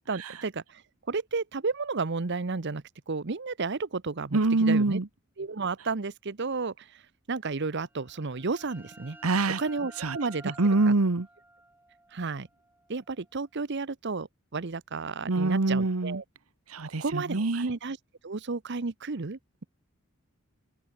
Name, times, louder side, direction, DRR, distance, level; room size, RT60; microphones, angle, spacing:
voice 1, 0.1-0.8 1.1-5.0 5.4-7.0 7.3-9.2 9.6-10.6 10.9-11.0 12.1-12.5 12.9-14.3 14.5-16.2 17.0-18.0 18.2-19.6, right 4 dB, 55° right, 0.9 m, -32 dB
voice 2, 4.3-5.1 9.2-9.6 10.0-10.2 10.6-11.3 15.3-16.2 16.7-17.7, right 3 dB, 90° right, 1.1 m, -24 dB
sound 1, 7.9-13.4, right 1 dB, 10° right, 4.8 m, -52 dB
open air
head